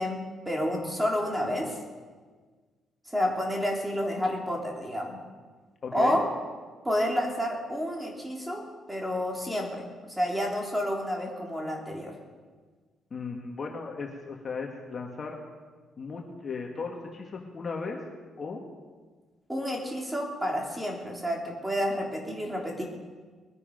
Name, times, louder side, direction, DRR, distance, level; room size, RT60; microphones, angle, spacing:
voice 1, 0.0-1.8 3.1-5.2 5.9-6.3 6.8-12.2 19.5-22.8, equal, 10° right, 0 dB, 3.3 m, -30 dB
voice 2, 5.8-6.2 13.1-15.4 16.0-18.0 18.4-18.6, left 4 dB, 45° left, 1 dB, 1.9 m, -36 dB
21.5 x 9.6 x 5.4 m, 1.5 s
cardioid pair, 90°, 0 cm